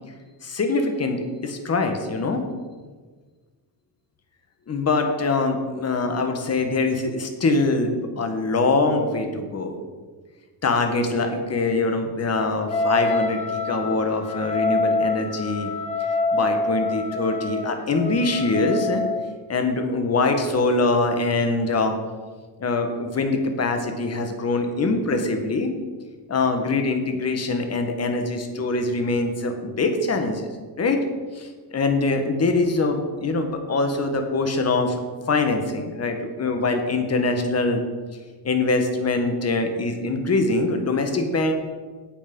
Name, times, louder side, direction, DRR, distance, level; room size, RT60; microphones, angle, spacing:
voice 1, 0.4-2.4 4.7-9.8 10.6-15.7 16.3-19.0 19.5-21.9 22.6-25.7 26.3-30.5 30.8-31.0 31.3-35.0 35.3-37.8 38.4-41.5, left 3 dB, 35° left, 6 dB, 1.5 m, -23 dB
Wind instrument woodwind instrument, 12.7-19.3, left 2 dB, 15° left, 1.1 m, -26 dB
8.8 x 8.5 x 5.5 m, 1.4 s
cardioid pair, 120°, 45 cm